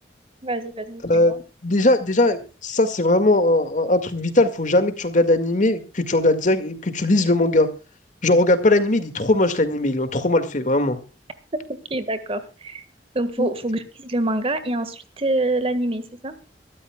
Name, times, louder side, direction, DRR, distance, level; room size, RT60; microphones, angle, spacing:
voice 1, 0.4-1.4 11.9-12.8 13.1-16.3, right 2 dB, 35° right, 11 dB, 1.6 m, -26 dB
voice 2, 1.6-7.7 8.2-11.0 13.4-13.5, left 2 dB, 45° left, 9 dB, 2.0 m, -19 dB
23.0 x 13.0 x 2.3 m, 0.32 s
head